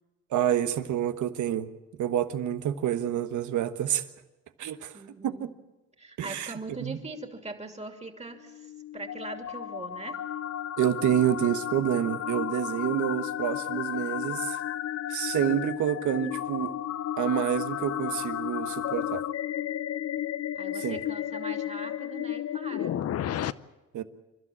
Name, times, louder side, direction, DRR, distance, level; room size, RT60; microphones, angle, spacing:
voice 1, 0.3-1.7 2.0-4.0 4.6-5.0 5.2-5.3 6.2-6.5 6.8-7.0 10.8-14.6 15.1-16.7 17.2-19.2 20.8-21.0 23.9-24.0, right 10 dB, 75° right, 11 dB, 1.3 m, -28 dB
voice 2, 4.9-5.5 6.0-10.2 20.5-23.0, right 3 dB, 20° right, 5 dB, 2.9 m, -41 dB
sound 1, 8.4-23.5, left 11 dB, 55° left, 0.7 m, -33 dB
28.5 x 12.5 x 8.6 m, 1.1 s
cardioid pair, 90°, 30 cm